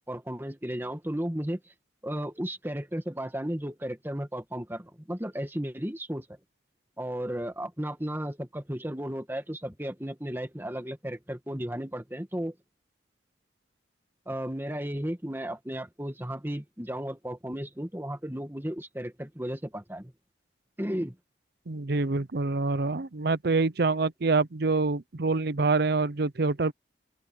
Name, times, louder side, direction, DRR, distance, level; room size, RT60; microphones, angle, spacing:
voice 1, 0.1-1.6 2.0-6.3 7.0-12.6 14.3-20.1 20.8-21.2, equal, 10° right, 1.9 m, -34 dB
voice 2, 21.7-26.7, right 3 dB, 60° right, 0.7 m, -26 dB
open air
head